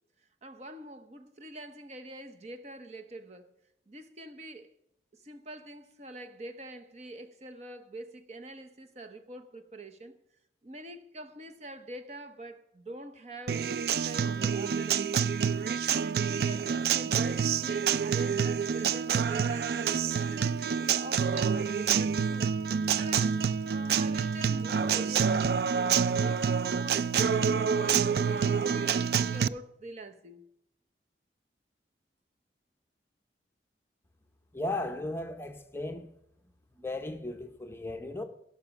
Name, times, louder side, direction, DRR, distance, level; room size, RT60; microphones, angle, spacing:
voice 1, 0.4-3.5 3.9-4.7 5.2-10.1 10.6-13.7 14.0-15.3 15.9-22.5 23.0-26.4 26.7-30.4, right 1 dB, 40° right, 0.8 m, -44 dB
Acoustic guitar, 13.5-29.5, right 7 dB, 60° right, 0.3 m, -27 dB
voice 2, 34.5-36.1 36.8-38.2, left 2 dB, 15° left, 0.8 m, -36 dB
17.0 x 5.9 x 6.0 m
head